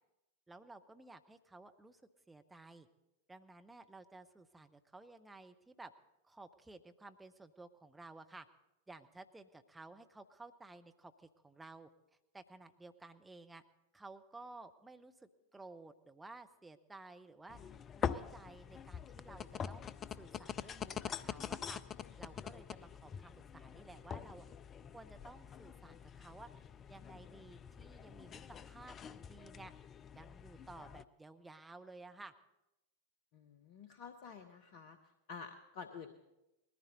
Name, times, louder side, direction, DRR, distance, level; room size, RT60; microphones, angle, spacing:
voice 1, 0.5-2.0 2.3-2.9 3.3-5.9 6.2-8.5 8.9-11.9 12.3-13.6 13.9-17.6 18.0-21.8 22.2-24.4 24.9-26.5 26.9-29.7 30.1-32.3, right 2 dB, 10° right, 7 dB, 0.8 m, -55 dB
sound 1, 17.5-31.0, left 7 dB, 25° left, 0.4 m, -45 dB
voice 2, 33.3-35.0 35.3-36.1, left 5 dB, 45° left, 8 dB, 0.9 m, -50 dB
20.0 x 14.0 x 4.0 m, 0.94 s
figure-of-eight pair, 90°, 0 cm